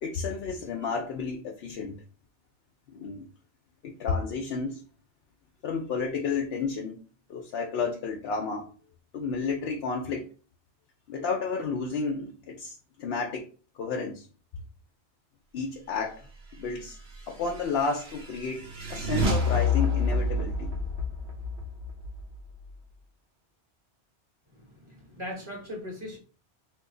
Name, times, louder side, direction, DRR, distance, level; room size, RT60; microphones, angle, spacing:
voice 1, 0.0-2.0 2.9-3.3 3.8-4.8 5.6-7.0 7.3-8.7 9.1-10.2 11.1-13.5 13.8-14.3 15.5-16.3 16.6-17.0 17.3-20.7, left 4 dB, 65° left, 0.8 m, -31 dB
sound 1, 17.1-22.7, left 3 dB, 75° right, 1.0 m, -29 dB
voice 2, 24.5-26.2, left 1 dB, 25° right, 1.2 m, -39 dB
2.9 x 2.6 x 3.7 m
omnidirectional pair, 1.2 m